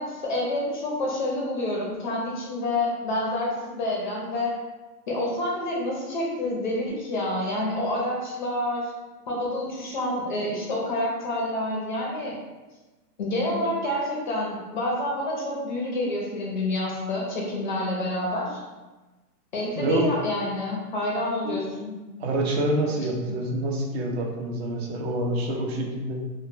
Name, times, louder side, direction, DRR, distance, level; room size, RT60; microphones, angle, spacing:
voice 1, 0.0-4.6 5.1-8.9 9.3-12.4 13.2-18.6 19.5-21.9, left 1 dB, 35° left, -3 dB, 0.4 m, -28 dB
voice 2, 19.8-20.2 21.4-21.6 22.2-26.3, right 1 dB, 40° right, 1 dB, 0.4 m, -27 dB
2.1 x 2.0 x 3.0 m, 1.2 s
hypercardioid pair, 130°, 49 cm